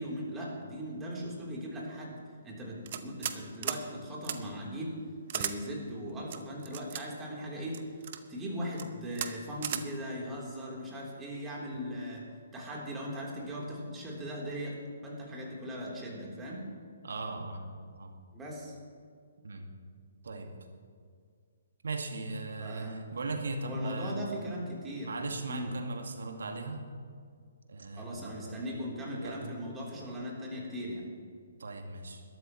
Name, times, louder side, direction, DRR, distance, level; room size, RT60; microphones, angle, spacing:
voice 1, 0.0-2.2 2.4-5.0 5.3-7.9 8.3-12.2 12.5-14.8 15.0-16.6 18.3-18.7 22.6-22.9 23.6-25.1 25.5-25.7 28.0-31.0, equal, 15° right, -4 dB, 3.6 m, -39 dB
sound 1, 2.9-3.4 3.6-3.8 4.2-4.4 5.3-5.5 6.3-7.0 7.7-8.2 8.7-8.9 9.1-9.3 9.6-9.8, right 9 dB, 45° right, 0.9 m, -35 dB
voice 2, 17.0-17.7 18.0-18.1 19.4-19.7 20.2-20.5 21.8-24.3 25.0-26.8 27.7-28.6 29.1-29.4 31.6-32.2, right 2 dB, 65° right, 4 dB, 2.0 m, -38 dB
21.0 x 12.5 x 3.2 m, 2.1 s
figure-of-eight pair, 130°, 0 cm